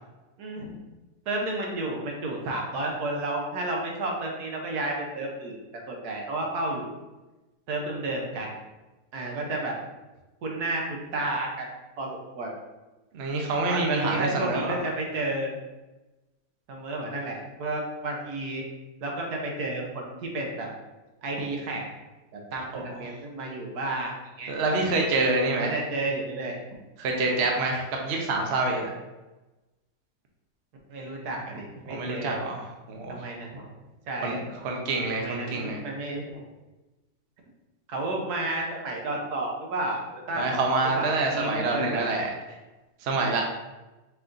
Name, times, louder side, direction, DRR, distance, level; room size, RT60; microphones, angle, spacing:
voice 1, 0.4-0.8 1.3-5.6 5.9-6.9 7.7-8.5 9.1-9.7 10.4-11.7 12.0-12.5 13.6-15.5 16.7-18.6 19.0-20.7 21.2-21.9 22.3-24.5 25.6-26.6 30.9-32.4 33.1-33.7 34.1-34.4 35.1-36.4 37.9-40.7 40.9-42.0, right 2 dB, 80° right, 0 dB, 1.4 m, -31 dB
voice 2, 13.1-14.8 22.7-23.0 24.5-25.7 27.0-28.9 31.9-33.2 34.2-35.8 40.3-42.3 43.0-43.4, right 2 dB, 55° right, 0 dB, 0.8 m, -27 dB
4.8 x 2.6 x 3.7 m, 1.1 s
omnidirectional pair, 1.7 m